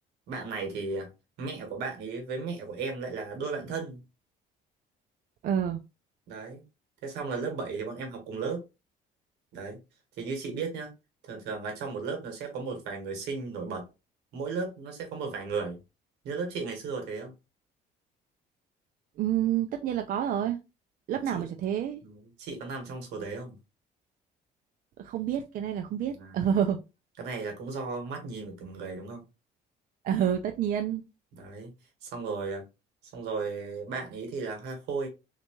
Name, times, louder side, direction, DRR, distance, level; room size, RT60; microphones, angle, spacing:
voice 1, 0.3-1.1 1.4-4.0 6.3-6.6 7.0-8.6 9.5-9.8 10.2-10.9 11.2-13.9 14.3-15.8 16.2-17.3 21.3-21.5 22.0-23.5 26.1-26.4 27.2-29.2 31.3-31.7 32.0-32.6 33.1-35.1, right 4 dB, 85° right, 1.4 m, -35 dB
voice 2, 5.4-5.8 19.2-20.6 21.1-22.0 25.0-26.8 30.0-31.0, right 9 dB, 55° right, 0.4 m, -28 dB
3.4 x 2.9 x 2.9 m
cardioid pair, 110°, 17 cm